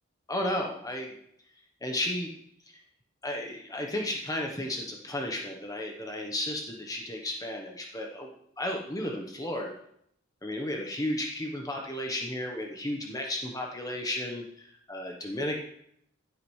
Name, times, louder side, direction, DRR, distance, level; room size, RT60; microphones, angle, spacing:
voice 1, 0.3-1.1 1.8-2.3 3.2-8.3 8.6-9.8 10.4-15.6, left 1 dB, 15° left, 1 dB, 1.0 m, -33 dB
15.5 x 8.5 x 3.2 m, 0.73 s
head